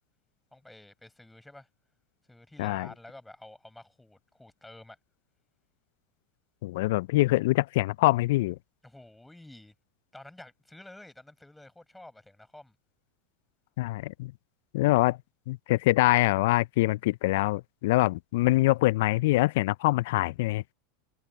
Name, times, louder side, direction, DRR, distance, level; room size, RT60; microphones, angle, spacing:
voice 1, 0.5-1.7 2.3-5.0 8.8-9.7 10.1-12.8, left 1 dB, 5° left, 7.9 m, -50 dB
voice 2, 6.6-8.6 13.8-14.3 14.7-15.2 15.5-20.6, left 19 dB, 65° left, 0.4 m, -24 dB
hypercardioid pair, 90°, 0 cm